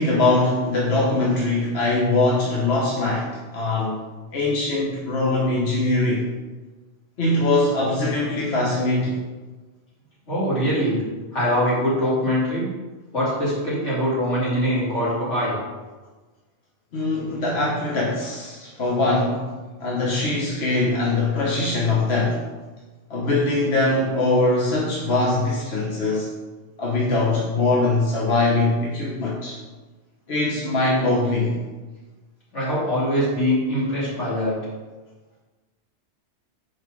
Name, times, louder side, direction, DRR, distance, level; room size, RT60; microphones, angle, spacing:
voice 1, 0.0-4.0 4.3-6.3 7.2-9.2 16.9-19.4 19.8-22.4 23.1-26.3 26.8-29.6 30.3-31.6, left 2 dB, 60° left, -4 dB, 1.3 m, -22 dB
voice 2, 10.3-11.0 11.3-12.7 13.1-15.6 32.5-34.5, equal, 80° left, -8 dB, 3.1 m, -23 dB
5.6 x 4.7 x 6.1 m, 1.3 s
omnidirectional pair, 1.2 m